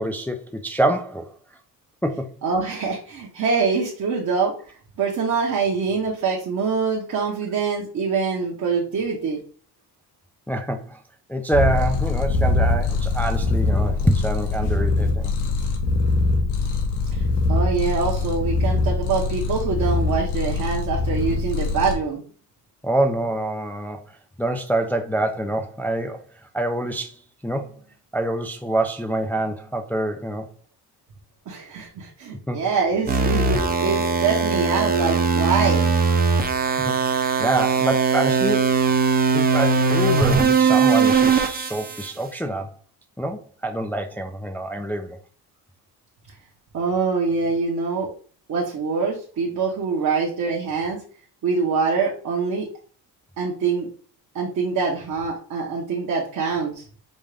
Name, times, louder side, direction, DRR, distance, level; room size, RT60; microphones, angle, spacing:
voice 1, 0.0-1.3 2.0-2.3 10.5-11.0 11.3-15.3 22.8-27.7 28.1-30.5 32.5-32.6 36.6-37.0 37.4-39.0 39.3-42.7 43.2-45.2, right 1 dB, 5° left, 0.3 m, -26 dB
voice 2, 2.4-4.5 5.0-9.4 17.1-17.2 17.5-22.2 31.5-35.9 46.7-48.1 48.5-51.0 51.4-52.7 53.4-53.9 54.3-56.8, right 5 dB, 50° right, 1.1 m, -24 dB
Purr, 11.5-21.9, left 3 dB, 85° left, 1.2 m, -23 dB
sound 1, 33.1-42.1, right 5 dB, 25° right, 0.7 m, -20 dB
5.3 x 2.5 x 3.3 m
cardioid pair, 125°, 39 cm